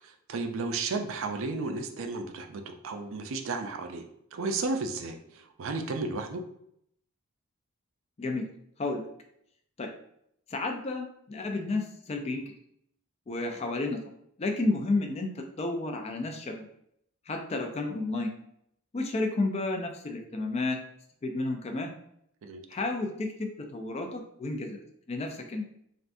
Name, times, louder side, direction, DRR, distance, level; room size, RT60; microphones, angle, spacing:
voice 1, 0.0-4.0 4.3-6.4 22.4-22.6, right 3 dB, 60° right, 6 dB, 0.4 m, -33 dB
voice 2, 10.5-12.4 13.3-14.0 14.4-16.7 17.3-18.3 18.9-20.8 21.2-21.9 22.7-24.8 25.1-25.6, left 2 dB, 30° left, 3 dB, 0.3 m, -31 dB
3.4 x 2.5 x 2.5 m, 0.72 s
head